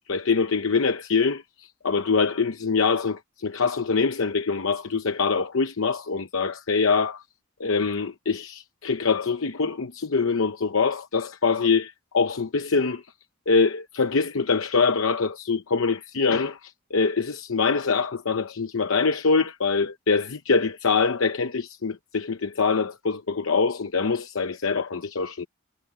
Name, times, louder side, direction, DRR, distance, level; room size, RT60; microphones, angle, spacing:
voice 1, 0.1-7.2 7.6-13.0 13.5-25.5, left 4 dB, 70° left, 0.8 m, -24 dB
head